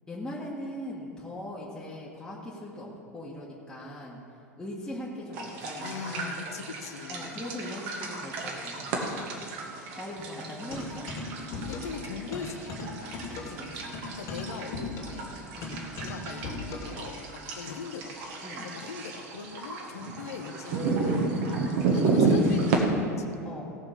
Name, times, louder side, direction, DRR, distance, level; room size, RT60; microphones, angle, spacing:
voice 1, 0.1-4.2 4.6-6.4 7.1-9.4 10.0-11.0 11.4-11.6 13.3-14.1 15.5-15.9 18.4-18.7 21.5-21.8 23.4-23.6, left 1 dB, 10° left, -6 dB, 1.9 m, -40 dB
sound 1, 5.3-22.8, right 3 dB, 50° right, 1.8 m, -32 dB
voice 2, 5.8-7.3 11.5-13.4 14.1-15.3 16.0-18.1 18.6-21.2 21.9-23.3, left 6 dB, 65° left, 6 dB, 0.9 m, -41 dB
sound 2, 10.7-12.0 12.3-17.0, left 3 dB, 40° left, 2.6 m, -38 dB
17.5 x 5.8 x 5.6 m, 2.5 s
figure-of-eight pair, 80°, 9 cm